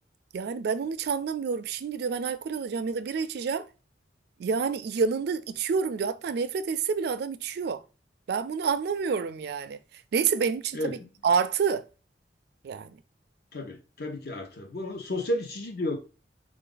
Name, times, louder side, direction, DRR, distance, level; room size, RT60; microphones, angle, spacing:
voice 1, 0.3-3.7 4.4-7.8 8.3-9.8 10.1-11.0 11.2-11.8 12.6-13.0, right 6 dB, 60° right, 0.3 m, -28 dB
voice 2, 10.7-11.1 13.5-16.0, left 1 dB, 60° left, 0.8 m, -32 dB
3.5 x 2.5 x 3.8 m
head